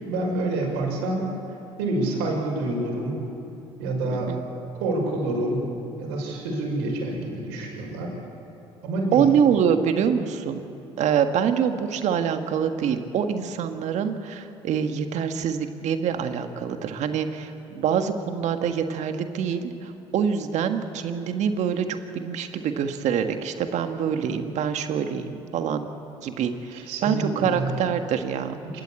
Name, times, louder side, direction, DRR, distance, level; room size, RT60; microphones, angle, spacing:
voice 1, 0.1-1.2 1.8-3.2 3.8-4.3 4.7-5.7 6.0-8.1 8.8-9.3 26.7-27.7 28.7-28.8, right 2 dB, 85° right, 0 dB, 5.7 m, -27 dB
voice 2, 9.1-10.6 11.0-25.9 26.2-28.6, right 7 dB, 65° right, 7 dB, 1.6 m, -25 dB
27.5 x 13.5 x 8.4 m, 2.8 s
hypercardioid pair, 65°, 13 cm